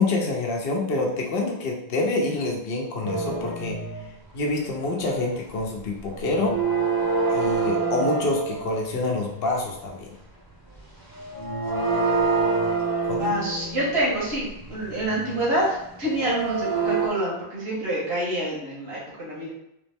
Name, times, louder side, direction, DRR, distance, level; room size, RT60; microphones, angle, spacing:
voice 1, 0.0-3.8 4.3-6.5 7.3-10.1 13.0-13.3, left 2 dB, 70° left, -1 dB, 1.0 m, -26 dB
sound 1, 3.0-4.2 4.5-4.8 5.0-5.8 6.1-9.1 10.8-10.9 11.1-17.1, right 4 dB, 25° right, 0.6 m, -27 dB
voice 2, 13.2-19.5, right 1 dB, 80° right, -6 dB, 1.5 m, -27 dB
3.5 x 3.0 x 3.4 m, 0.83 s
omnidirectional pair, 1.1 m